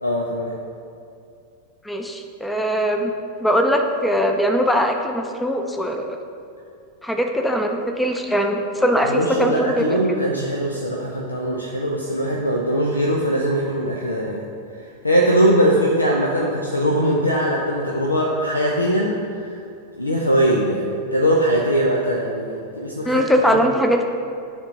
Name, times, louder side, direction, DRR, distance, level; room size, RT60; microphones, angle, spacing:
voice 1, 0.0-0.5 9.1-14.4 15.0-19.5 20.0-23.2 23.7-23.8, equal, 80° left, -1 dB, 0.6 m, -21 dB
voice 2, 1.8-3.1 3.4-6.2 7.0-9.8 23.1-24.2, equal, 5° left, 4 dB, 0.6 m, -21 dB
9.9 x 3.6 x 3.9 m, 2.5 s
figure-of-eight pair, 90°, 0 cm